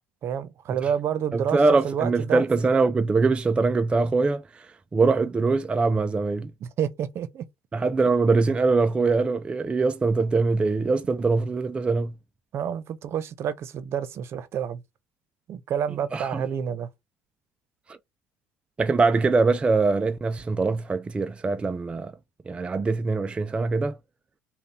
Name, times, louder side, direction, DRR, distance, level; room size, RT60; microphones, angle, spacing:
voice 1, 0.2-2.4 6.6-7.5 12.5-14.8 15.5-16.9, right 8 dB, 50° right, 0.8 m, -29 dB
voice 2, 1.3-6.5 7.7-12.1 16.1-16.4 17.9-18.0 18.8-22.1 22.5-24.0, right 3 dB, 20° right, 0.4 m, -23 dB
5.3 x 2.3 x 4.2 m
supercardioid pair, 85°, 5 cm